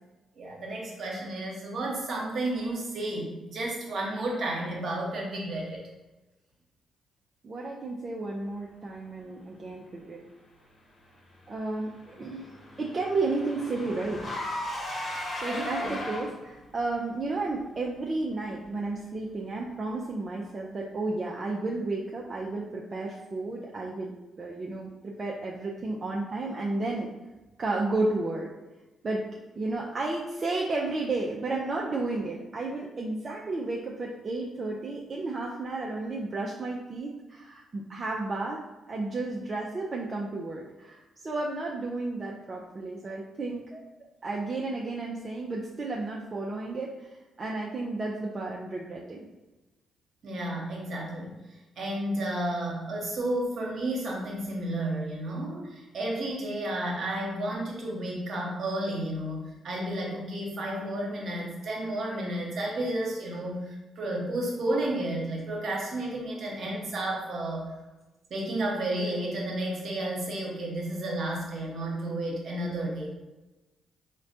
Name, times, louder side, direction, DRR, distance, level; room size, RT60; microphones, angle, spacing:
voice 1, 0.4-5.8 15.5-15.9 50.2-51.3 51.8-67.7 68.3-73.1, right 1 dB, 60° right, -2 dB, 1.0 m, -32 dB
voice 2, 7.4-10.2 11.5-12.5 12.8-14.3 15.3-24.1 24.4-27.1 27.6-28.5 29.0-29.2 29.6-38.6 38.9-43.8 44.2-49.2, right 2 dB, 45° right, -2 dB, 0.4 m, -32 dB
Car / Engine, 11.6-16.6, left 1 dB, 50° left, 0.9 m, -36 dB
4.0 x 2.2 x 2.7 m, 1.1 s
hypercardioid pair, 45°, 0 cm